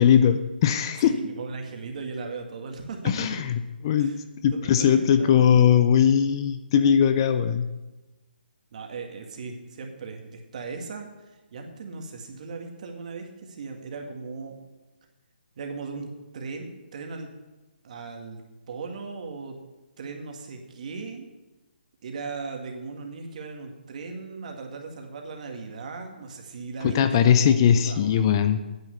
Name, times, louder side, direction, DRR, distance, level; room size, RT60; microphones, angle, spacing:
voice 1, 0.0-1.2 3.0-4.1 4.4-7.7 26.8-28.6, left 8 dB, 25° left, 10 dB, 0.5 m, -20 dB
voice 2, 1.0-3.4 4.0-4.1 4.6-5.5 8.7-11.1 11.5-14.6 15.6-17.3 17.8-18.4 18.7-19.6 20.0-21.3 22.0-27.5 27.8-28.2, right 4 dB, 45° right, 3 dB, 1.9 m, -37 dB
9.7 x 9.1 x 6.9 m, 1.1 s
hypercardioid pair, 160°, 5 cm